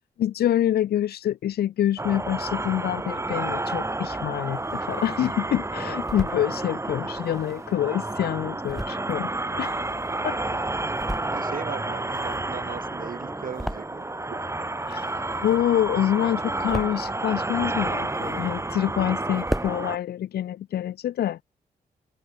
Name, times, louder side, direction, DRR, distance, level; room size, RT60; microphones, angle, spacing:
voice 1, 0.2-9.3 9.6-9.8 10.2-10.4 14.8-15.1 15.4-21.4, left 11 dB, 80° left, 0.7 m, -26 dB
sound 1, 2.0-20.0, right 2 dB, 15° right, 2.0 m, -30 dB
sound 2, 4.3-5.2 5.7-6.4 7.1-10.4 10.8-11.6 11.9-14.3 14.6-15.8 16.2-17.2 17.7-18.7 19.1-19.2 19.3-19.8, equal, ahead, 2.6 m, -36 dB
voice 2, 11.3-14.5, right 7 dB, 60° right, 2.5 m, -38 dB
open air
cardioid pair, 75°, 16 cm